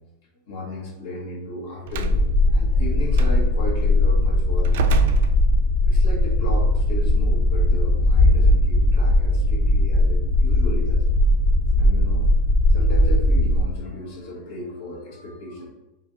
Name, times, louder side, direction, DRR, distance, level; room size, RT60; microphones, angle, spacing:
voice 1, 0.5-4.8 5.9-11.0 11.8-12.3 12.7-15.7, left 2 dB, 55° left, -3 dB, 1.5 m, -35 dB
sound 1, 1.9-13.6, left 1 dB, 35° left, 0.4 m, -19 dB
Slam, 1.9-2.2 3.1-3.3 4.6-5.9, right 8 dB, 60° right, 0.4 m, -26 dB
4.7 x 2.9 x 3.8 m, 0.98 s
supercardioid pair, 175°, 0 cm